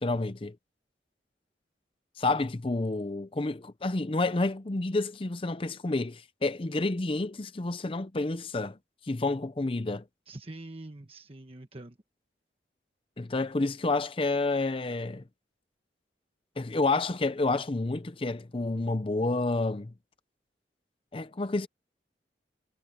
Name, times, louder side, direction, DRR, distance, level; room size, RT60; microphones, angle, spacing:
voice 1, 0.0-0.6 2.2-8.8 9.0-10.0 13.2-15.2 16.6-19.9 21.1-21.7, left 2 dB, 30° left, 0.6 m, -29 dB
voice 2, 10.3-12.0, right 2 dB, 35° right, 1.2 m, -44 dB
head